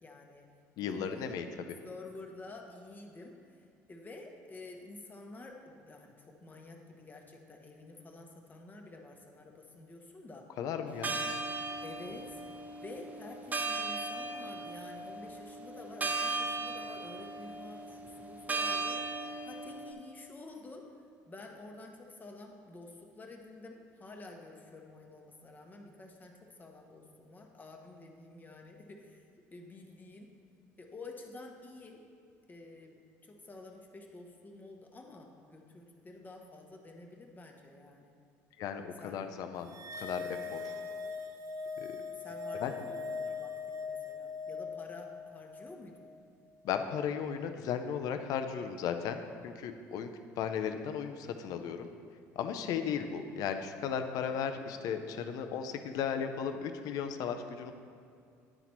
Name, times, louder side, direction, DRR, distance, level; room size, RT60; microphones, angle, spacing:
voice 1, 0.0-0.5 0.8-1.4 1.8-10.5 11.8-12.4 12.8-20.9 21.3-30.3 30.8-32.0 32.5-38.1 39.0-39.2 42.2-46.1, left 2 dB, 25° left, 2 dB, 1.0 m, -50 dB
voice 2, 0.8-1.5 10.6-11.2 38.6-40.6 41.8-42.0 42.6-42.7 46.6-51.9 52.4-57.7, left 7 dB, 65° left, 7 dB, 0.5 m, -36 dB
sound 1, 10.9-19.9, right 3 dB, 25° right, 0.9 m, -37 dB
sound 2, 39.7-46.2, left 4 dB, 55° right, 0.8 m, -41 dB
9.9 x 4.1 x 4.5 m, 2.4 s
supercardioid pair, 80°, 7 cm